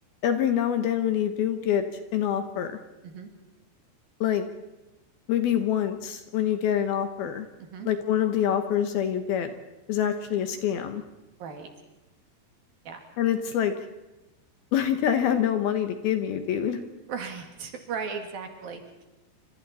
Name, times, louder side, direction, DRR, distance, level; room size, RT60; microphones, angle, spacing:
voice 1, 0.2-1.8 2.1-2.8 4.2-4.5 5.3-7.5 7.9-9.5 9.9-11.0 13.2-13.7 14.7-16.8, left 9 dB, 70° left, 8 dB, 2.8 m, -25 dB
voice 2, 17.1-19.0, right 6 dB, 60° right, 4 dB, 3.7 m, -36 dB
28.0 x 26.0 x 4.3 m, 1.0 s
omnidirectional pair, 5.1 m